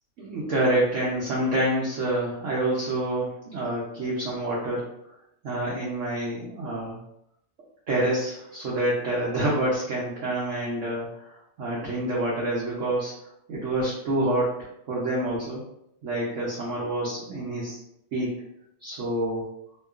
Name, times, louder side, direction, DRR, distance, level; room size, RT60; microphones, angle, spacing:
voice 1, 0.2-4.9 5.4-7.0 7.9-13.1 13.5-14.6 14.9-15.6 16.0-17.8 18.1-18.3 18.8-19.4, right 1 dB, 65° right, -6 dB, 0.8 m, -27 dB
2.8 x 2.3 x 2.3 m, 0.78 s
omnidirectional pair, 1.8 m